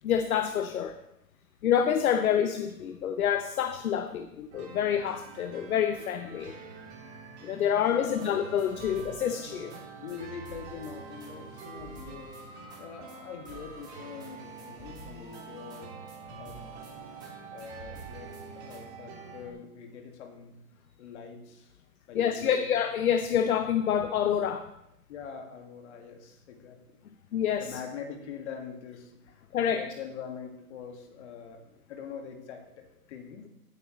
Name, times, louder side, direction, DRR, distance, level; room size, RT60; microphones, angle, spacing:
voice 1, 0.0-1.0 1.6-6.5 7.4-9.7 22.1-24.7 27.3-27.8 29.5-29.8, left 8 dB, 60° left, 9 dB, 0.8 m, -27 dB
sound 1, 4.5-19.5, right 5 dB, 40° right, 2.3 m, -46 dB
voice 2, 7.9-8.3 9.7-12.5 12.8-16.0 16.3-16.6 17.5-20.6 21.0-21.7 22.1-22.7 25.1-26.8 27.6-33.5, left 6 dB, 45° left, 4 dB, 2.0 m, -44 dB
sound 2, 8.1-9.8 10.1-10.2 10.5-12.8 13.1-13.2 13.5-16.2 16.5-17.3 17.6-18.8, right 1 dB, 10° right, 2.0 m, -50 dB
15.5 x 8.2 x 3.1 m, 0.85 s
hypercardioid pair, 140°, 47 cm